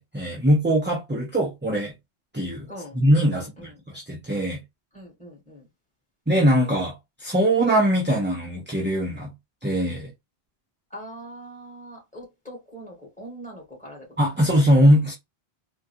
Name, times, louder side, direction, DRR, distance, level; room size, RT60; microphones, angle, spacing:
voice 1, 0.0-1.9 2.3-2.7 2.9-4.6 6.3-9.3 9.6-10.1 14.2-15.1, equal, 10° right, 0.6 m, -21 dB
voice 2, 2.7-3.0 3.3-3.7 4.9-5.7 10.9-14.2, right 1 dB, 5° left, 1.9 m, -42 dB
3.7 x 2.3 x 2.7 m
omnidirectional pair, 1.1 m